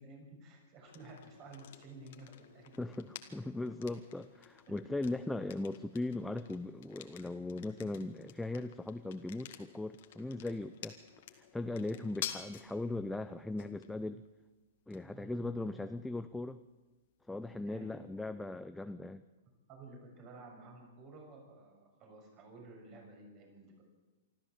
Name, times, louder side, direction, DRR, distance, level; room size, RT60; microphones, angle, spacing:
voice 1, 0.0-2.7 11.9-12.1 15.1-16.1 17.6-18.1 19.7-23.8, right 2 dB, 40° right, 1 dB, 6.7 m, -53 dB
sound 1, 0.9-18.6, left 11 dB, 60° left, 2.0 m, -51 dB
voice 2, 2.8-11.0 11.3-14.2 14.9-16.6 17.3-19.2, left 2 dB, 5° left, 9 dB, 0.6 m, -39 dB
25.5 x 13.5 x 7.6 m, 1.2 s
hypercardioid pair, 110°, 0 cm